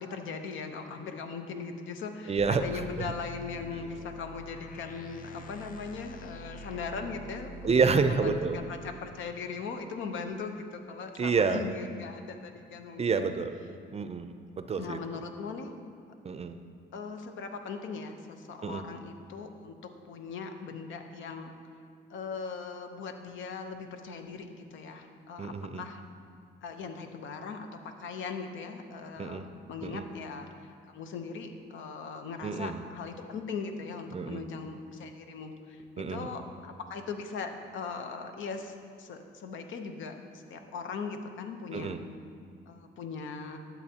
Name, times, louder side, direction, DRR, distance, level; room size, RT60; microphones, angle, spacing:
voice 1, 0.0-7.8 8.1-13.4 14.8-15.7 16.9-21.5 22.1-26.0 26.6-41.9 42.7-43.6, left 5 dB, 75° left, 6 dB, 0.8 m, -39 dB
voice 2, 2.3-2.6 7.6-8.6 11.2-11.7 13.0-13.6 13.9-15.0 16.2-16.5 18.6-18.8 25.4-25.8 29.2-29.4 29.8-30.1 32.4-32.8 34.1-34.4 36.0-36.3 41.7-42.0, right 5 dB, 30° right, 9 dB, 0.5 m, -28 dB
sound 1, 2.4-8.6, left 2 dB, 45° left, 0.6 m, -45 dB
12.0 x 7.2 x 2.8 m, 2.4 s
cardioid pair, 90°, 20 cm